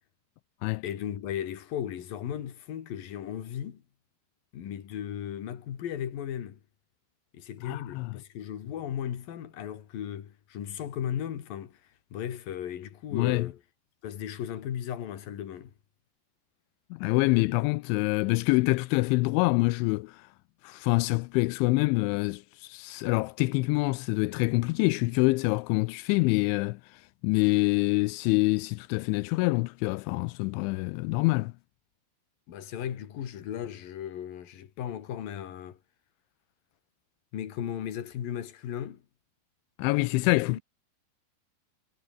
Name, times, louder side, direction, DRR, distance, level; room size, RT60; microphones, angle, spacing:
voice 1, 0.8-3.8 4.5-6.6 7.3-11.8 12.1-13.6 14.0-15.7 32.5-35.8 37.3-39.0 40.5-40.6, left 10 dB, 55° left, 3.7 m, -36 dB
voice 2, 7.6-8.1 13.1-13.5 16.9-20.3 20.6-31.5 39.8-40.6, left 24 dB, 85° left, 3.0 m, -26 dB
omnidirectional pair, 5.4 m